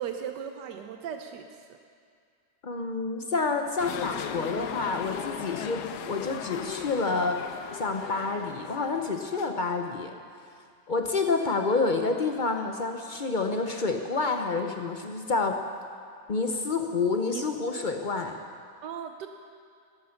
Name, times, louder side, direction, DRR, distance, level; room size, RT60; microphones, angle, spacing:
voice 1, 0.0-1.6 17.3-17.9 18.8-19.3, right 8 dB, 85° right, 5 dB, 1.4 m, -37 dB
voice 2, 2.6-7.4 7.7-10.1 10.9-15.6 16.3-18.4, left 3 dB, 50° left, 4 dB, 0.5 m, -28 dB
sound 1, 3.8-9.6, left 9 dB, 80° left, 1.2 m, -38 dB
14.0 x 11.5 x 5.7 m, 2.2 s
omnidirectional pair, 1.8 m